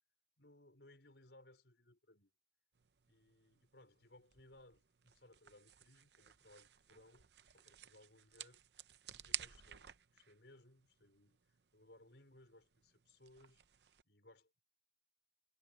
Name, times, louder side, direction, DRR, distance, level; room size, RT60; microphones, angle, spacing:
voice 1, 0.4-2.3 3.1-8.6 9.1-11.4 11.7-13.6 14.0-14.6, left 1 dB, 85° left, 5.0 m, -64 dB
sound 1, 2.7-14.0, right 12 dB, 75° right, 0.7 m, -53 dB
head